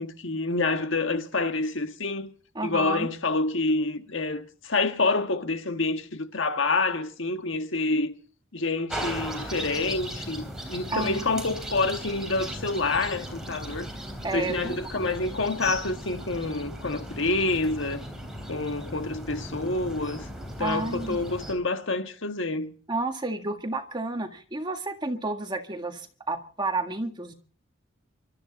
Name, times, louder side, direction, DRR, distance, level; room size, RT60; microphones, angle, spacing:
voice 1, 0.0-2.3 2.6-8.1 8.5-13.9 14.3-18.0 18.5-20.2 20.6-22.8, left 3 dB, 70° left, 1.5 m, -27 dB
voice 2, 2.6-3.1 10.9-11.3 14.2-14.8 20.6-21.2 22.9-27.3, right 2 dB, 20° right, 1.7 m, -31 dB
sound 1, 8.9-21.5, equal, 5° right, 3.6 m, -37 dB
25.0 x 13.5 x 4.1 m
head